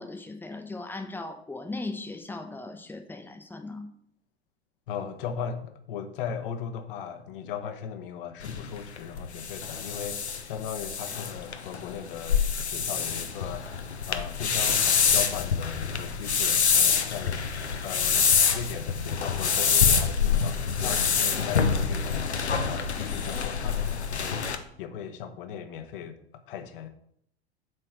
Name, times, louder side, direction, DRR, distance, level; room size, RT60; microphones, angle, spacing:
voice 1, 0.0-3.9, left 2 dB, 5° left, 7 dB, 0.9 m, -38 dB
voice 2, 4.9-13.7 14.1-17.4 17.8-18.3 18.5-22.3 22.6-23.9 24.2-26.9, left 7 dB, 55° left, 8 dB, 1.1 m, -38 dB
sound 1, 8.4-24.6, left 6 dB, 80° left, 0.8 m, -26 dB
7.8 x 4.5 x 6.3 m, 0.69 s
figure-of-eight pair, 80°, 33 cm